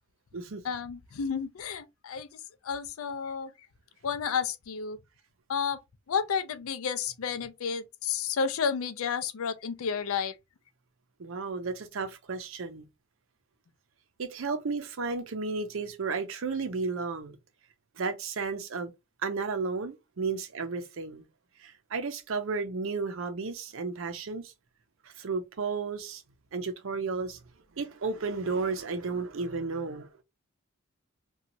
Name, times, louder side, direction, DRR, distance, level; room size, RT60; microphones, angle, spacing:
voice 1, 0.6-3.7 4.0-5.0 5.5-5.8 6.1-10.4, left 6 dB, 85° left, 0.4 m, -31 dB
voice 2, 11.2-12.9 14.2-17.4 18.0-18.9 19.2-21.3 21.6-24.5 25.2-26.2 26.5-27.4 27.8-30.2, right 4 dB, 75° right, 0.6 m, -33 dB
2.9 x 2.3 x 2.5 m
head